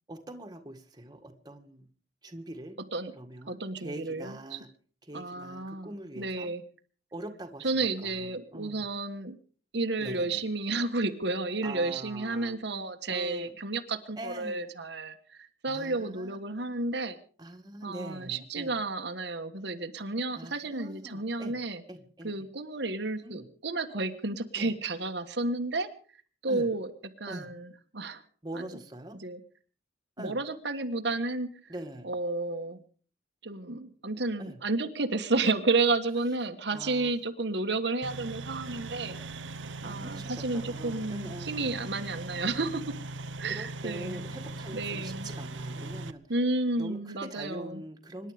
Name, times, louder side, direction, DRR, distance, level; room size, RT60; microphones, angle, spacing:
voice 1, 0.1-1.9 2.2-2.8 3.2-4.7 5.1-6.5 7.1-8.9 10.0-10.4 11.6-12.6 13.1-13.5 14.2-14.7 15.7-16.4 17.4-18.8 20.3-21.6 21.9-22.3 23.2-23.5 24.6-24.7 26.5-26.7 27.3-27.5 28.4-29.2 30.2-30.4 31.7-32.1 34.4-34.6 36.7-37.1 39.8-41.7 43.5-46.2 46.8-48.3, right 1 dB, 20° right, 4 dB, 1.9 m, -43 dB
voice 2, 3.5-4.6 5.1-6.6 7.6-9.4 9.7-17.2 17.8-21.8 22.2-25.9 26.4-26.9 27.2-28.2 28.5-28.8 29.1-29.4 30.2-31.5 32.0-32.8 33.4-39.2 39.8-42.9 43.4-44.2 44.7-45.3 46.3-47.8, right 3 dB, 65° right, 5 dB, 1.4 m, -31 dB
sound 1, 38.0-46.1, right 2 dB, 85° right, 1.0 m, -39 dB
25.5 x 11.0 x 5.1 m, 0.43 s
head